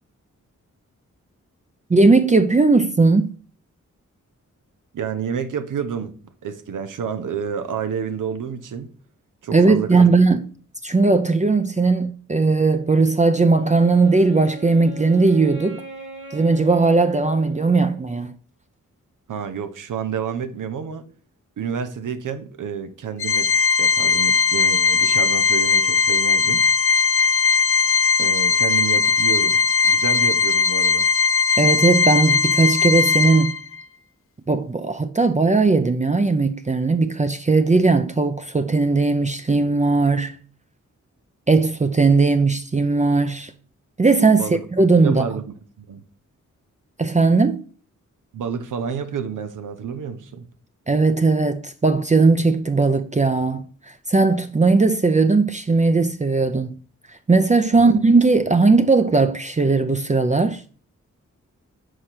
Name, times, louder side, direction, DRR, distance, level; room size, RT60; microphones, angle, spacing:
voice 1, 1.9-3.3 9.5-10.5 10.8-15.8 16.3-18.3 31.6-33.6 34.5-40.3 41.5-43.5 44.0-45.2 47.0-47.6 50.9-53.7 54.1-56.8 57.3-60.6, right 3 dB, 25° right, 0.6 m, -18 dB
voice 2, 4.9-6.1 6.4-8.9 9.4-10.1 19.3-21.0 21.6-23.5 23.8-26.6 28.2-29.6 29.8-31.1 44.2-44.6 45.0-45.4 45.8-46.0 48.3-50.4 57.7-58.0, right 7 dB, 80° right, 0.7 m, -29 dB
Wind instrument woodwind instrument, 13.5-18.3, right 3 dB, 40° right, 1.6 m, -39 dB
Organ, 23.2-33.8, left 5 dB, 45° left, 0.4 m, -19 dB
5.0 x 4.2 x 5.8 m
cardioid pair, 60°, 31 cm